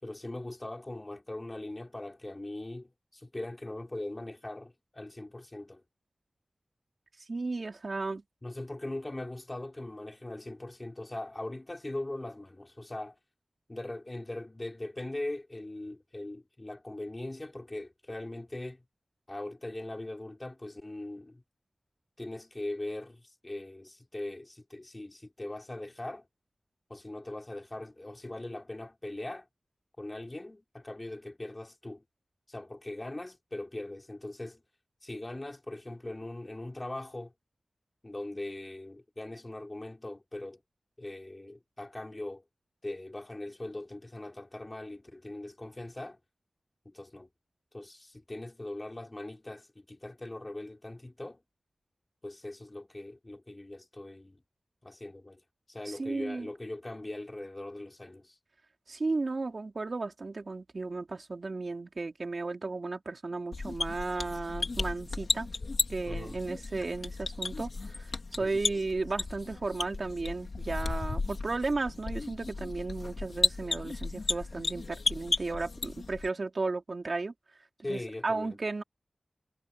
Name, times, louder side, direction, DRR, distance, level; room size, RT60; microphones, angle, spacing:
voice 1, 0.0-5.8 8.4-13.2 13.7-18.8 19.3-21.4 22.2-26.2 26.9-29.5 30.0-32.0 32.5-34.6 35.0-37.3 38.0-40.6 41.0-42.4 42.8-46.2 46.8-47.3 47.7-51.4 52.2-54.4 54.8-55.4 55.7-58.4 66.1-66.4 68.4-68.8 77.8-78.6, left 1 dB, 30° left, 4.4 m, -40 dB
voice 2, 7.3-8.2 56.0-56.5 58.9-65.5 65.9-68.1 68.4-77.3 77.9-78.8, right 3 dB, 60° right, 3.4 m, -34 dB
sound 1, 63.5-76.3, left 3 dB, 70° left, 3.4 m, -34 dB
wide cardioid pair, 70°, 0 cm